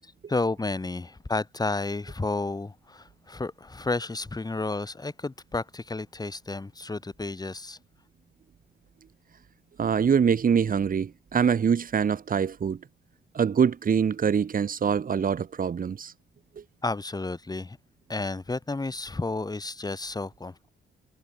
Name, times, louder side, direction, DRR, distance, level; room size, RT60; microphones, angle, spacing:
voice 1, 0.0-7.8 16.8-17.8 18.1-20.7, left 3 dB, 20° left, 7.3 m, -31 dB
voice 2, 9.8-12.8 13.3-16.1 16.6-16.7, right 7 dB, 45° right, 2.7 m, -24 dB
cardioid pair, 90°, 20 cm